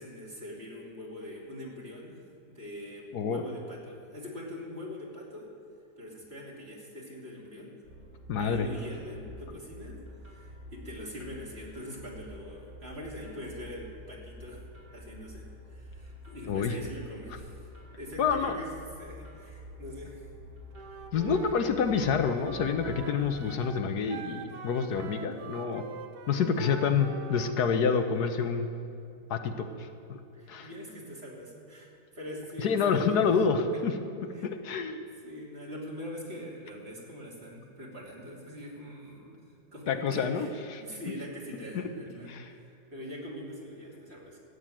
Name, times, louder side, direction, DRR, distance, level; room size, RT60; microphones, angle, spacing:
voice 1, 0.0-2.2 2.5-5.5 6.0-7.7 8.4-10.0 10.3-14.6 14.9-17.7 18.0-18.7 19.0-20.3 30.3-33.1 34.3-34.5 35.2-39.4 39.7-44.4, equal, 40° right, -3 dB, 3.0 m, -43 dB
sound 1, 7.8-23.3, equal, 65° right, 4.5 m, -48 dB
voice 2, 8.3-8.7 16.5-16.7 18.2-18.6 21.1-25.8 26.3-28.7 29.3-29.9 30.5-30.7 32.6-33.9 34.4-35.0 39.9-40.8 41.7-41.8 42.3-42.4, left 6 dB, 80° left, 7 dB, 1.4 m, -28 dB
Wind instrument woodwind instrument, 20.7-27.5, right 6 dB, 85° right, 1.5 m, -44 dB
15.0 x 8.1 x 9.1 m, 2.5 s
omnidirectional pair, 1.7 m